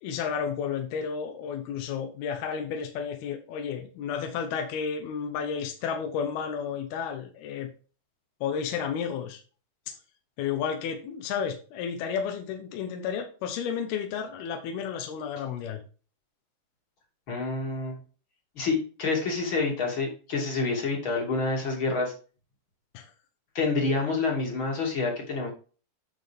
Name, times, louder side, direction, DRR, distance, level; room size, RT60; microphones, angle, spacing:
voice 1, 0.0-7.7 8.4-9.4 9.9-10.0 10.4-15.8 22.9-23.1, left 7 dB, 75° left, 4 dB, 2.3 m, -32 dB
voice 2, 17.3-18.0 18.6-22.1 23.5-25.5, left 3 dB, 35° left, -1 dB, 2.3 m, -28 dB
10.5 x 6.3 x 3.5 m, 0.37 s
omnidirectional pair, 5.8 m